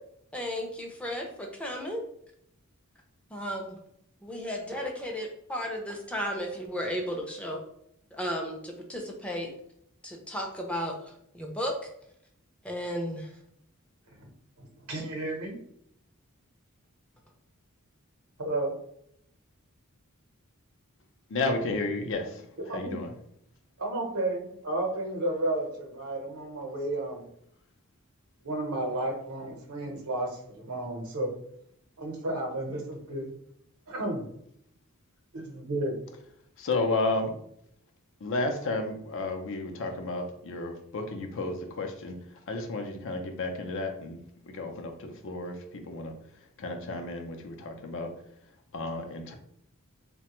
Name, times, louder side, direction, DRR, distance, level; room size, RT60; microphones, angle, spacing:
voice 1, 0.3-2.0 3.3-3.8 4.2-7.6 8.1-9.5 10.0-10.9 11.3-11.7 12.6-13.3, equal, 5° left, 1 dB, 0.5 m, -34 dB
voice 2, 14.6-15.5 18.4-18.7 22.7-23.0 23.8-27.3 28.4-31.3 32.0-33.3 33.9-34.3 35.3-36.0, right 1 dB, 80° right, 2 dB, 0.8 m, -32 dB
voice 3, 21.3-22.4 22.7-23.1 36.6-37.3 38.2-42.1 42.5-44.2 44.4-45.5 45.9-46.1 46.6-48.1 48.7-49.3, left 2 dB, 60° left, 4 dB, 0.5 m, -32 dB
3.2 x 2.2 x 2.9 m, 0.73 s
head